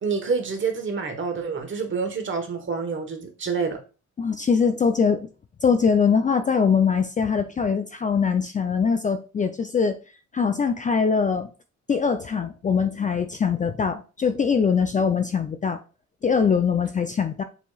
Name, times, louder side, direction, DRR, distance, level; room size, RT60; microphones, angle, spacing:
voice 1, 0.0-3.8, right 5 dB, 40° right, 1.2 m, -27 dB
voice 2, 4.2-5.3 5.6-10.0 10.3-11.5 11.9-15.8 16.2-17.4, left 6 dB, 25° left, 0.4 m, -22 dB
6.9 x 2.9 x 2.3 m
cardioid pair, 90°, 30 cm